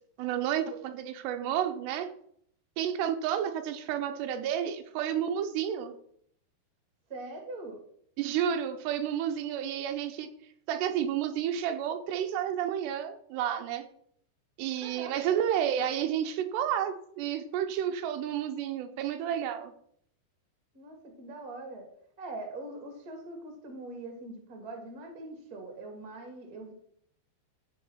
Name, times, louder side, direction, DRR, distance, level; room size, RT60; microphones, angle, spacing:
voice 1, 0.2-2.1 2.8-5.9 8.2-10.3 10.7-13.8 14.6-19.7, right 9 dB, 85° right, 7 dB, 3.0 m, -31 dB
voice 2, 7.1-7.8 14.8-15.4 20.7-21.9 22.2-26.7, right 2 dB, 30° right, 3 dB, 1.8 m, -42 dB
14.0 x 4.7 x 5.6 m, 0.68 s
omnidirectional pair, 4.8 m